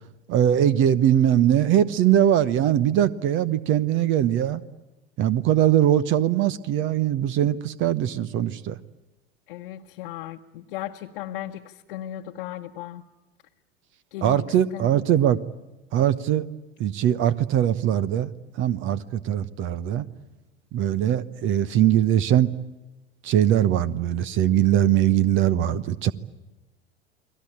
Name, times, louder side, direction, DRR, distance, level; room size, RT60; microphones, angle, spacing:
voice 1, 0.3-4.6 5.2-8.7 14.2-15.4 15.9-16.4 16.8-18.3 18.6-20.1 20.7-22.5 23.2-26.1, right 11 dB, 40° right, 19 dB, 1.0 m, -21 dB
voice 2, 9.5-13.0 14.1-14.4 14.7-15.0, left 13 dB, 55° left, 1 dB, 1.2 m, -36 dB
30.0 x 21.0 x 8.7 m, 1.1 s
figure-of-eight pair, 80°, 32 cm